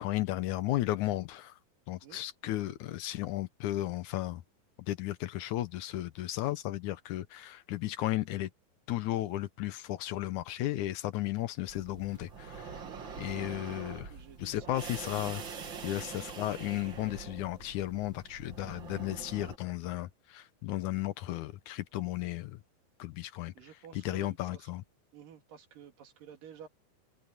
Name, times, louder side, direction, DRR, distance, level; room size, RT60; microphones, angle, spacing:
voice 1, 0.0-1.6 1.9-4.4 4.9-8.5 8.9-12.8 13.2-14.1 14.4-15.5 15.8-22.6 23.0-24.8, left 15 dB, 75° left, 2.1 m, -34 dB
voice 2, 2.0-2.6 12.8-13.6 13.9-14.7 16.0-16.2 23.5-24.7 25.1-26.7, right 8 dB, 85° right, 4.0 m, -53 dB
sound 1, 11.7-19.6, right 5 dB, 40° right, 2.4 m, -44 dB
omnidirectional pair, 3.8 m